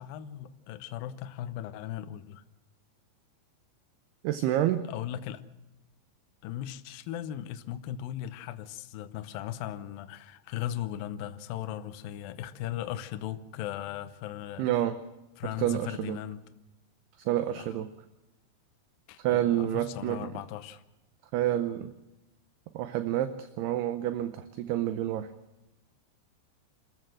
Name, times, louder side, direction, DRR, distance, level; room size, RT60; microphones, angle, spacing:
voice 1, 0.0-2.4 4.9-5.4 6.4-14.7 15.4-16.4 17.6-17.7 19.1-20.8, left 12 dB, 80° left, 11 dB, 2.1 m, -38 dB
voice 2, 4.2-4.8 14.6-15.0 15.6-16.2 17.2-17.9 19.2-20.3 21.3-21.9 22.7-25.3, right 12 dB, 75° right, 10 dB, 2.6 m, -28 dB
26.0 x 14.5 x 7.7 m, 0.98 s
omnidirectional pair, 5.2 m